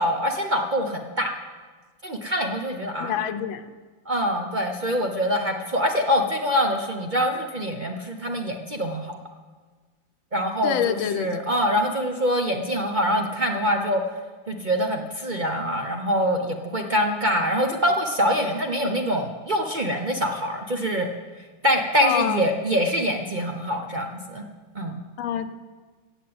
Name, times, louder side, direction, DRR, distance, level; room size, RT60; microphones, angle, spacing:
voice 1, 0.0-1.3 2.0-3.1 4.1-9.1 10.3-14.0 14.5-21.1 21.6-24.4 24.7-25.0, equal, 45° right, 3 dB, 0.6 m, -24 dB
voice 2, 3.0-3.6 10.6-11.4 18.8-18.9 22.0-22.5 25.2-25.5, left 9 dB, 85° left, 9 dB, 1.5 m, -26 dB
15.5 x 7.4 x 8.6 m, 1.4 s
omnidirectional pair, 2.1 m